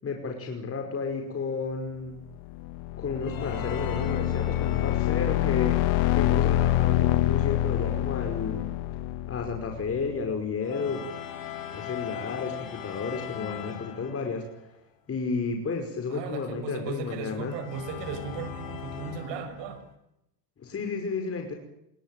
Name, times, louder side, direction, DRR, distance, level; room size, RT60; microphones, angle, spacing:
voice 1, 0.0-2.2 3.0-8.7 9.3-11.0 11.7-14.4 15.1-17.6 20.6-21.5, left 4 dB, 30° left, 3 dB, 5.4 m, -32 dB
sound 1, 2.4-10.1, left 13 dB, 70° left, 1.7 m, -26 dB
sound 2, 3.2-5.6 10.6-14.6 17.5-19.9, left 8 dB, 45° left, 6.0 m, -39 dB
voice 2, 16.1-19.8, right 5 dB, 65° right, 10 dB, 6.9 m, -36 dB
29.5 x 21.5 x 9.2 m, 0.82 s
supercardioid pair, 115°, 46 cm